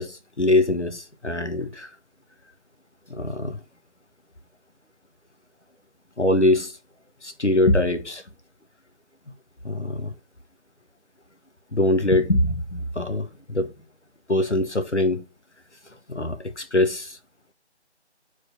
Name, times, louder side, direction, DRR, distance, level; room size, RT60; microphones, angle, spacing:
voice 1, 0.0-1.9 3.1-3.6 6.2-6.7 7.2-8.2 9.6-10.1 11.7-13.7 14.3-15.2 16.1-17.2, left 1 dB, 85° left, 1.5 m, -23 dB
4.9 x 4.7 x 5.7 m
figure-of-eight pair, 170°, 34 cm